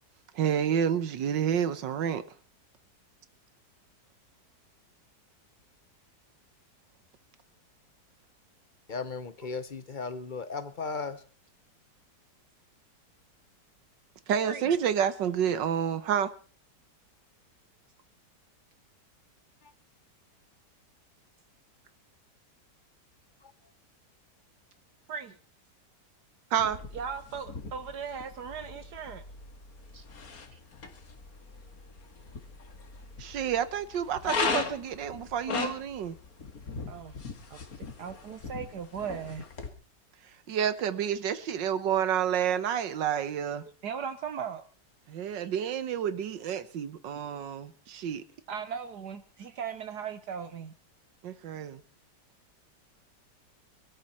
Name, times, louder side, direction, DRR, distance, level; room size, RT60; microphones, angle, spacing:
voice 1, 0.3-2.2 14.3-16.3 26.5-26.8 33.2-36.2 40.5-43.6 45.1-48.2 51.2-51.8, right 8 dB, 90° right, 1.8 m, -29 dB
voice 2, 8.9-11.2 19.6-19.7 23.4-23.5, left 4 dB, 35° left, 0.8 m, -36 dB
sound 1, 26.6-39.7, left 4 dB, 55° left, 2.4 m, -38 dB
voice 3, 26.9-29.2 29.9-30.0 30.5-30.6 36.9-37.1 37.5-39.4 43.8-44.6 45.3-45.5 48.5-50.7, right 7 dB, 70° right, 1.5 m, -38 dB
23.0 x 13.0 x 4.3 m
omnidirectional pair, 1.9 m